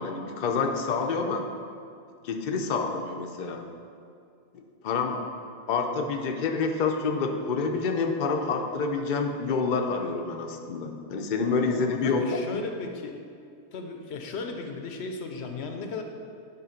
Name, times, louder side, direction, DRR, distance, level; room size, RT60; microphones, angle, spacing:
voice 1, 0.0-1.5 2.2-3.6 4.5-5.2 5.7-12.6, left 4 dB, 55° left, 3 dB, 0.6 m, -28 dB
voice 2, 11.7-13.2 13.7-16.0, left 4 dB, 80° left, 4 dB, 0.9 m, -36 dB
9.5 x 3.5 x 5.0 m, 2.4 s
omnidirectional pair, 1.1 m